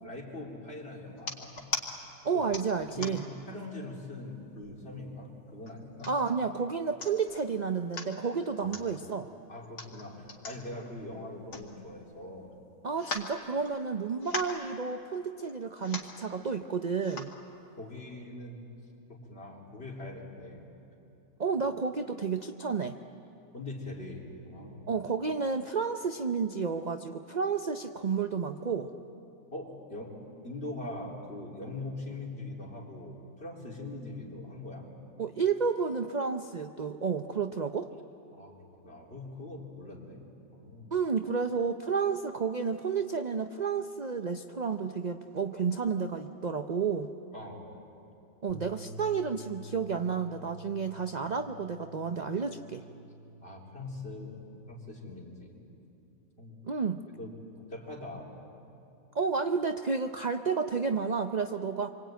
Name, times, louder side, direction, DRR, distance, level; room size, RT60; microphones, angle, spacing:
voice 1, 0.0-1.5 2.3-2.5 2.9-6.1 8.6-9.0 9.5-12.6 17.7-18.6 19.1-20.6 23.5-24.9 29.5-30.1 30.4-34.9 38.3-40.2 40.5-40.9 47.3-47.7 53.4-55.6 56.4-56.6 57.2-58.3, left 2 dB, 40° left, -1 dB, 4.1 m, -42 dB
sound 1, 1.2-1.9 2.5-3.4 3.9-4.0 4.4-5.0 5.7-6.3 6.7-6.8 7.0-7.4 7.8-8.1 8.7-8.9 9.6-12.2 12.5-12.6 13.0-13.9 14.2-14.6 15.4-15.5 15.8-16.2 17.0-17.4 18.0-18.1, left 3 dB, 85° left, 2.8 m, -39 dB
voice 2, 2.2-3.3 6.1-9.3 12.8-17.3 21.4-23.0 24.9-28.9 35.2-37.9 40.9-47.1 48.4-52.8 56.6-57.0 59.1-61.9, right 5 dB, 45° right, 7 dB, 0.5 m, -31 dB
sound 2, 48.5-54.7, left 1 dB, 60° left, 3.2 m, -49 dB
27.0 x 24.0 x 9.2 m, 2.8 s
omnidirectional pair, 1.7 m